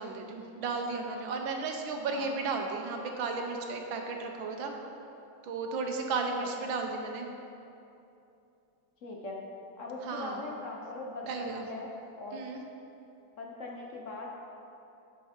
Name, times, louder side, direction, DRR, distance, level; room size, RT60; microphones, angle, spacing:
voice 1, 0.0-4.7 5.4-7.3 10.0-10.4 11.3-11.6 12.3-12.6, right 4 dB, 90° right, 3 dB, 1.7 m, -34 dB
voice 2, 9.0-9.4 9.8-11.9 12.2-12.6 13.4-14.3, left 2 dB, 55° left, -1 dB, 1.0 m, -40 dB
10.0 x 6.9 x 4.4 m, 2.8 s
omnidirectional pair, 2.0 m